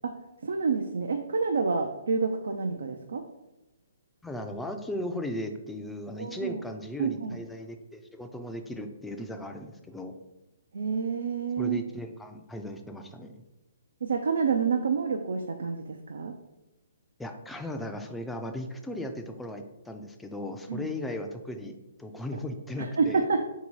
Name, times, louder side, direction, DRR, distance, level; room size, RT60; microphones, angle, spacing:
voice 1, 0.4-3.2 6.2-6.6 7.0-7.4 10.7-11.8 14.0-16.3 20.7-20.9 22.8-23.4, right 5 dB, 75° right, 4 dB, 0.4 m, -28 dB
voice 2, 4.2-10.1 11.6-13.4 17.2-23.3, left 1 dB, 5° left, 5 dB, 0.4 m, -37 dB
3.9 x 2.8 x 4.5 m, 0.98 s
hypercardioid pair, 140°, 0 cm